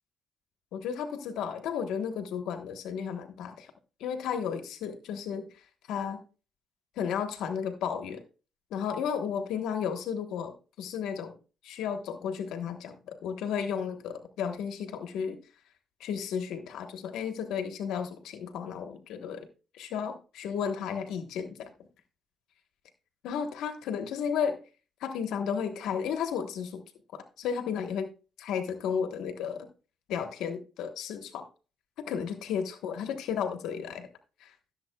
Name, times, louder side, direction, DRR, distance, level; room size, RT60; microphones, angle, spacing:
voice 1, 0.7-3.7 4.0-5.5 5.9-6.2 7.0-8.2 8.7-11.3 11.6-15.4 16.0-19.5 19.7-21.7 23.2-24.6 25.0-26.8 27.1-28.1 28.4-29.7 30.1-31.4 32.0-34.1 34.4-34.5, left 7 dB, 85° left, 7 dB, 1.2 m, -33 dB
15.5 x 7.5 x 2.3 m, 0.34 s
cardioid pair, 90°, 0 cm